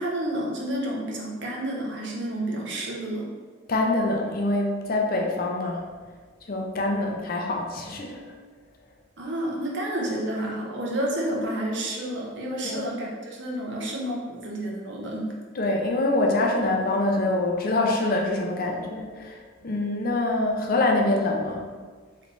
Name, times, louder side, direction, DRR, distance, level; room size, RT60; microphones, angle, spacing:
voice 1, 0.0-3.3 9.2-15.3, right 1 dB, 70° right, -2 dB, 0.9 m, -30 dB
voice 2, 3.7-5.8 6.5-8.2 12.6-12.9 15.5-21.7, left 2 dB, 50° left, 1 dB, 0.6 m, -25 dB
3.2 x 3.2 x 4.0 m, 1.5 s
head